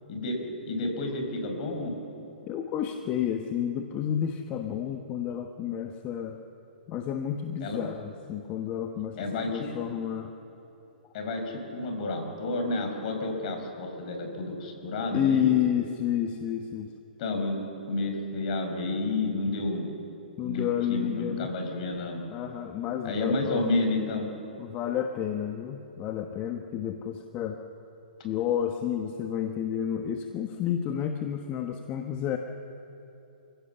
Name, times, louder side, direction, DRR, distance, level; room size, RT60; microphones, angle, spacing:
voice 1, 0.7-2.0 7.6-7.8 9.2-9.7 11.1-15.6 17.2-17.6 17.9-19.9 20.4-22.2 23.0-24.3, left 2 dB, 50° left, 4 dB, 5.4 m, -30 dB
voice 2, 2.5-6.4 6.9-10.3 15.1-16.9 20.4-21.5 22.3-23.7 24.6-27.6 28.2-32.4, left 9 dB, 30° left, 5 dB, 1.2 m, -30 dB
28.5 x 16.5 x 7.0 m, 2.9 s
hypercardioid pair, 130°, 5 cm